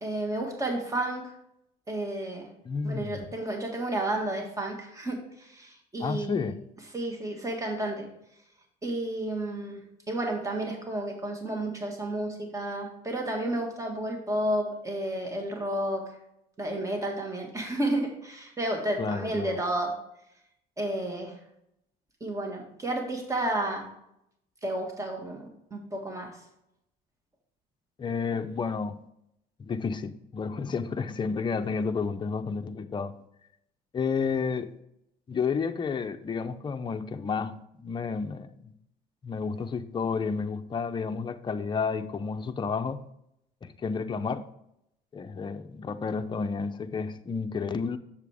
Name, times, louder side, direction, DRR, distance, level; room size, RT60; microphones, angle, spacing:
voice 1, 0.0-1.2 1.9-2.5 2.8-6.5 6.9-8.1 8.8-16.0 16.6-19.9 20.8-21.3 22.2-23.9 24.6-25.4 25.7-26.3, right 1 dB, 20° right, 1.7 m, -31 dB
voice 2, 2.6-3.2 6.0-6.5 19.0-19.6 28.0-29.0 29.6-33.1 33.9-34.7 35.3-38.7 39.2-43.0 43.6-44.4 45.1-48.0, left 5 dB, 25° left, 0.6 m, -31 dB
7.3 x 7.0 x 3.5 m
cardioid pair, 110°, 17 cm